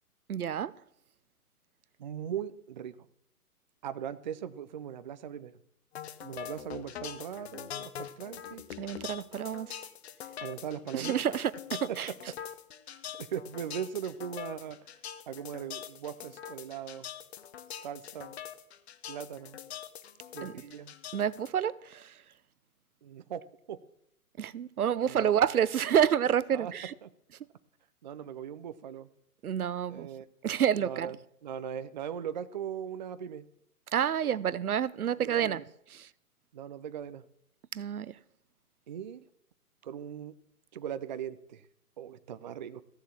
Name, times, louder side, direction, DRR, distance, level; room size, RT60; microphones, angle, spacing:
voice 1, 0.3-0.7 8.8-9.8 10.9-11.5 12.0-12.1 20.4-20.5 21.1-22.1 24.4-26.9 29.4-30.1 30.4-31.1 33.9-35.6 36.0-36.1 37.7-38.1, right 9 dB, 70° right, 0.7 m, -28 dB
voice 2, 2.0-3.0 3.8-5.6 6.2-8.6 10.4-11.4 11.7-12.0 12.9-14.8 15.3-17.1 17.7-18.4 19.1-19.6 20.3-20.9 23.0-23.8 25.1-25.3 26.5-26.7 27.0-27.1 28.0-29.1 29.9-30.3 30.8-33.5 35.2-35.6 36.5-37.2 38.9-39.3 39.8-40.3 40.7-41.6 42.0-42.8, right 9 dB, 30° right, 0.5 m, -39 dB
sound 1, 5.9-21.5, left 9 dB, 45° left, 0.9 m, -43 dB
15.5 x 7.3 x 7.1 m
figure-of-eight pair, 130°, 45 cm